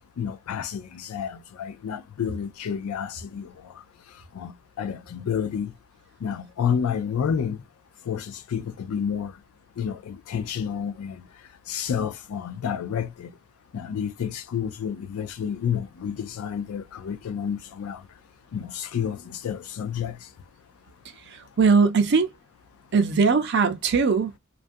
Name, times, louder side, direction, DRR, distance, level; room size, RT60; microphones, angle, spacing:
voice 1, 0.2-3.7 4.3-5.7 6.2-7.6 8.1-9.3 9.8-11.2 11.7-13.3 13.7-18.0 18.5-20.2, left 7 dB, 85° left, 0.3 m, -30 dB
voice 2, 21.3-22.3 22.9-24.3, right 5 dB, 50° right, 0.5 m, -20 dB
2.4 x 2.2 x 2.5 m
head